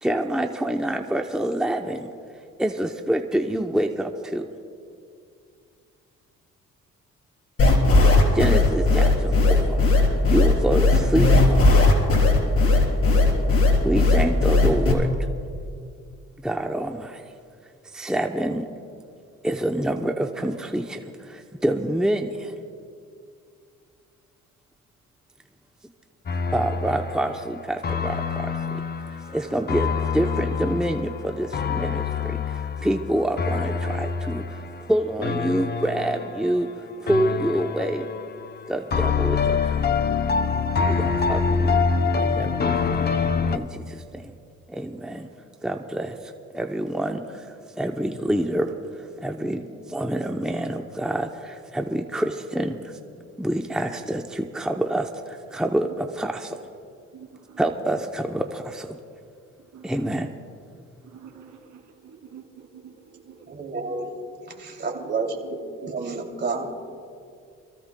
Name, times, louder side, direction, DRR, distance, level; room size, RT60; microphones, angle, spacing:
voice 1, 0.0-2.1 2.6-4.5 8.3-9.8 10.1-11.7 13.8-15.1 16.4-17.2 17.9-18.7 19.4-22.5 26.5-28.6 29.3-38.1 38.7-39.8 40.8-41.9 42.1-43.1 43.5-44.3 44.7-45.3 45.6-53.0 53.4-56.6 57.6-59.0 59.8-60.3, right 1 dB, ahead, 4 dB, 0.7 m, -27 dB
sound 1, 7.6-14.9, left 3 dB, 50° left, 3.7 m, -17 dB
sound 2, 26.3-36.7 37.1-38.5 38.9-43.6, left 5 dB, 35° left, 0.7 m, -26 dB
voice 2, 57.1-57.6 59.7-60.1 61.1-61.6 62.0-62.7 63.1-63.5 64.9-65.1 65.8-65.9, right 8 dB, 75° right, 2 dB, 2.4 m, -46 dB
voice 3, 63.5-64.1 64.6-65.6 65.9-66.7, right 4 dB, 35° right, 1 dB, 2.7 m, -29 dB
27.5 x 15.0 x 2.2 m, 2.3 s
cardioid pair, 90°, 30 cm